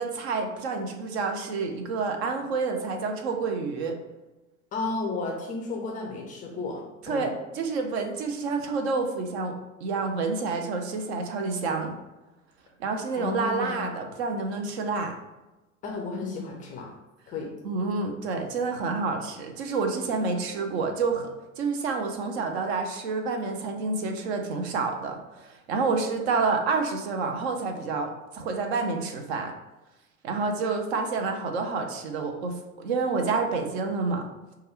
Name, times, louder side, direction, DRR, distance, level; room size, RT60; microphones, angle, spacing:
voice 1, 0.0-3.9 7.1-9.5 9.8-11.9 12.8-15.1 17.6-21.3 21.6-29.5 30.2-34.3, right 4 dB, 50° right, 4 dB, 0.6 m, -28 dB
voice 2, 4.7-6.8 7.1-7.3 13.2-13.9 15.8-17.0 17.3-17.5, left 3 dB, 20° left, 0 dB, 0.4 m, -33 dB
4.5 x 2.3 x 3.1 m, 1.1 s
figure-of-eight pair, 80°, 42 cm